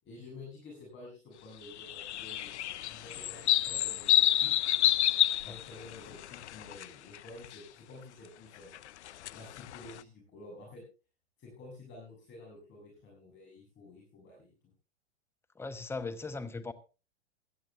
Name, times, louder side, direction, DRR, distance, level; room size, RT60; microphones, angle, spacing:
voice 1, 0.0-2.5 2.9-4.5 5.4-8.8 9.3-10.8 11.4-14.5, left 2 dB, 30° left, 7.1 m, -50 dB
sound 1, 1.7-6.9 7.1-7.5 8.7-10.0, left 13 dB, 75° left, 0.6 m, -29 dB
voice 2, 15.5-16.7, left 3 dB, 5° left, 1.0 m, -38 dB
17.0 x 12.5 x 3.4 m
hypercardioid pair, 115°, 35 cm